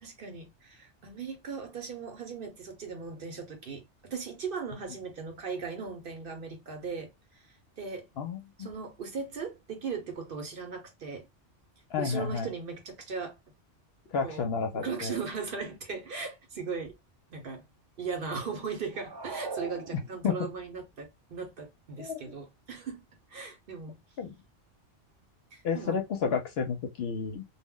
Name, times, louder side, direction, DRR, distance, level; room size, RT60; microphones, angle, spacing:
voice 1, 0.0-8.1 8.6-11.3 12.0-13.4 14.2-14.5 14.7-16.9 17.3-17.6 18.0-23.0 23.3-24.0 25.5-26.0, right 5 dB, 55° right, 0.8 m, -38 dB
voice 2, 8.2-8.7 11.9-12.5 14.1-15.1 20.2-20.3 22.0-22.2 24.2-24.3 25.6-27.4, left 6 dB, 65° left, 0.7 m, -31 dB
sound 1, 18.9-20.5, right 3 dB, 35° right, 0.4 m, -40 dB
2.2 x 2.0 x 3.6 m
omnidirectional pair, 1.2 m